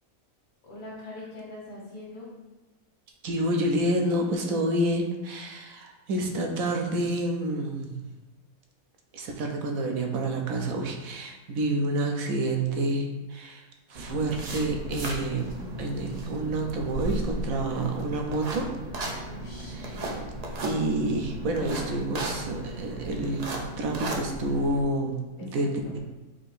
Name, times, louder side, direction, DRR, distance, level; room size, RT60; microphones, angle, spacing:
voice 1, 0.6-2.3 19.2-20.2 25.4-25.9, left 2 dB, 75° left, -5 dB, 1.6 m, -43 dB
voice 2, 3.2-7.9 9.1-13.6 13.9-18.7 19.7-20.1 20.6-23.5 23.8-26.0, right 1 dB, 70° right, 2 dB, 1.1 m, -28 dB
sound 1, 13.9-24.8, right 1 dB, 90° right, 0.3 m, -35 dB
4.6 x 2.6 x 4.2 m, 1.2 s
omnidirectional pair, 1.6 m